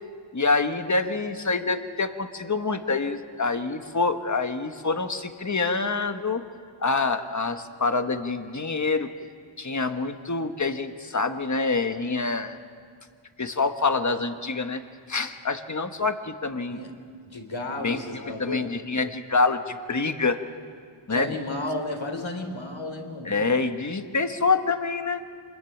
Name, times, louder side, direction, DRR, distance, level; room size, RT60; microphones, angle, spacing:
voice 1, 0.3-6.4 6.8-9.1 9.6-12.6 13.4-14.8 15.1-16.8 17.8-20.4 21.1-21.3 23.2-25.2, left 3 dB, 35° left, 7 dB, 1.4 m, -26 dB
voice 2, 17.2-18.7 21.1-23.4, left 2 dB, 65° left, 3 dB, 3.6 m, -33 dB
26.0 x 21.0 x 9.1 m, 2.1 s
wide cardioid pair, 75°, 50 cm